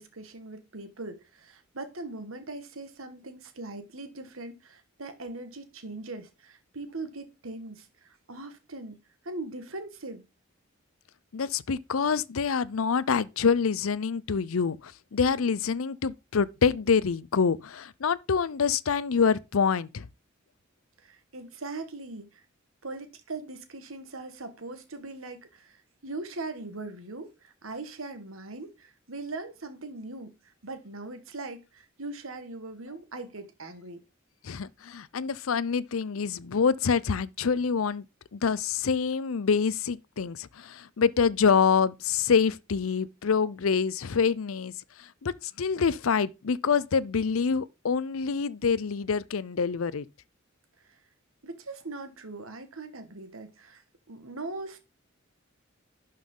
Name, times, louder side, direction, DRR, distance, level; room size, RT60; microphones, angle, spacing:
voice 1, 0.0-9.0 9.2-10.2 21.0-22.4 22.8-34.0 50.8-51.0 51.4-54.8, right 2 dB, 80° right, 1.8 m, -40 dB
voice 2, 11.3-20.1 34.4-38.1 38.3-44.7 45.0-50.1, left 6 dB, 85° left, 0.6 m, -26 dB
11.5 x 5.5 x 3.9 m
head